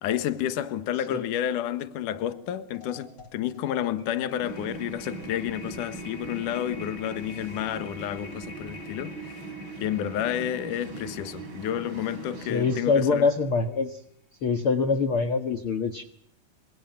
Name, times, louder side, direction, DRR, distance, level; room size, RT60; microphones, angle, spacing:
voice 1, 0.0-9.3 9.8-13.3, left 11 dB, 65° left, 2.8 m, -30 dB
sound 1, 2.2-2.4 2.7-13.0, left 3 dB, 30° left, 4.2 m, -47 dB
sound 2, 4.4-12.8, right 3 dB, 35° right, 3.9 m, -41 dB
voice 2, 12.4-14.0 14.4-16.0, left 4 dB, 50° left, 2.0 m, -24 dB
28.0 x 26.5 x 7.9 m
omnidirectional pair, 4.1 m